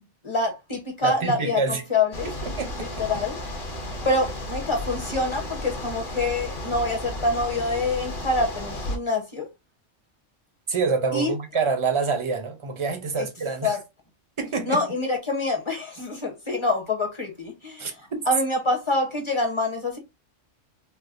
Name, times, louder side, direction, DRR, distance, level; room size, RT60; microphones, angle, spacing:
voice 1, 0.2-2.3 2.8-3.4 4.0-9.5 11.1-11.3 13.6-13.8 14.7-17.9 18.3-20.0, left 2 dB, 30° left, 0.8 m, -26 dB
voice 2, 1.0-1.8 2.2-3.1 10.7-13.8 14.4-14.9 17.8-18.2, right 4 dB, 35° right, 0.6 m, -27 dB
sound 1, 2.1-9.0, left 1 dB, 50° left, 1.0 m, -33 dB
4.5 x 2.1 x 2.5 m
omnidirectional pair, 1.3 m